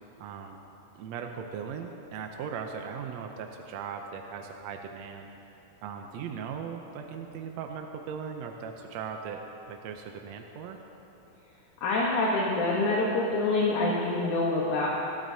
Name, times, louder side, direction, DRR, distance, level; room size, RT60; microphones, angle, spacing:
voice 1, 0.2-0.6 1.0-5.3 5.8-9.4 9.7-10.8, right 6 dB, 75° right, 4 dB, 1.6 m, -38 dB
voice 2, 11.8-14.9, left 2 dB, 70° left, -4 dB, 2.6 m, -26 dB
22.5 x 12.5 x 2.8 m, 3.0 s
omnidirectional pair, 3.7 m